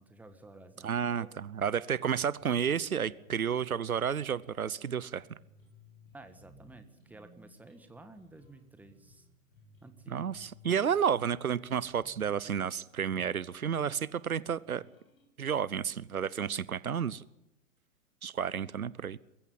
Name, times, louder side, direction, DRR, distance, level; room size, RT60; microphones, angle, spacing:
voice 1, 0.0-1.3 6.1-9.3 9.8-10.4, right 2 dB, 5° right, 8 dB, 1.6 m, -52 dB
voice 2, 0.8-5.3 10.1-14.8 15.4-17.2 18.2-19.2, right 7 dB, 80° right, 20 dB, 0.9 m, -31 dB
sound 1, 2.4-15.3, left 2 dB, 70° left, 7.6 m, -60 dB
22.0 x 15.0 x 9.3 m, 0.89 s
figure-of-eight pair, 115°, 42 cm